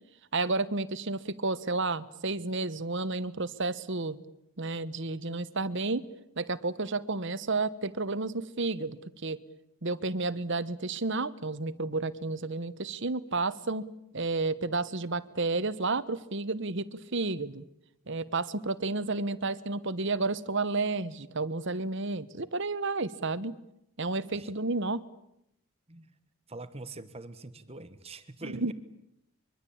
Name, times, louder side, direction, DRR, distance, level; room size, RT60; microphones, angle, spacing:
voice 1, 0.3-4.2 4.6-6.0 6.4-9.4 9.8-13.9 14.1-17.6 18.1-23.6 24.0-25.0 28.4-28.7, right 3 dB, 55° right, 14 dB, 1.2 m, -31 dB
voice 2, 26.5-28.7, right 2 dB, 25° right, 12 dB, 1.3 m, -44 dB
24.0 x 24.0 x 8.7 m, 0.81 s
head